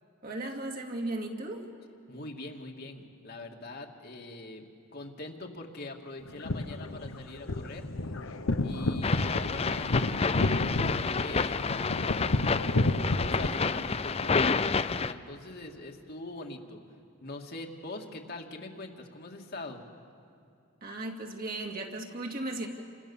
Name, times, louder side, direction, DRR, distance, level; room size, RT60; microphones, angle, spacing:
voice 1, 0.2-1.7 20.8-22.7, right 2 dB, 45° right, 1 dB, 2.5 m, -36 dB
voice 2, 2.1-4.7 4.9-7.9 8.6-11.7 13.3-16.8 17.2-19.8, left 2 dB, 45° left, 1 dB, 2.2 m, -43 dB
sound 1, 6.3-13.5, left 2 dB, 70° left, 1.0 m, -31 dB
sound 2, 9.0-15.1, left 4 dB, 30° left, 0.5 m, -29 dB
29.0 x 25.5 x 7.2 m, 2.6 s
head